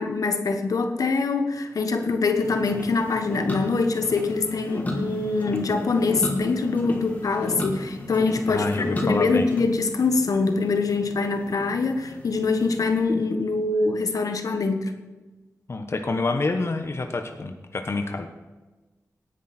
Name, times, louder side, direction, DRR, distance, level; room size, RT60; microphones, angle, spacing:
voice 1, 0.0-14.9, left 3 dB, 80° left, 6 dB, 1.5 m, -24 dB
sound 1, 2.4-13.0, left 1 dB, 30° left, 2.8 m, -34 dB
voice 2, 8.5-9.5 15.7-18.3, left 3 dB, 50° left, 5 dB, 1.2 m, -27 dB
18.0 x 10.0 x 4.4 m, 1.2 s
wide cardioid pair, 115°, 6 cm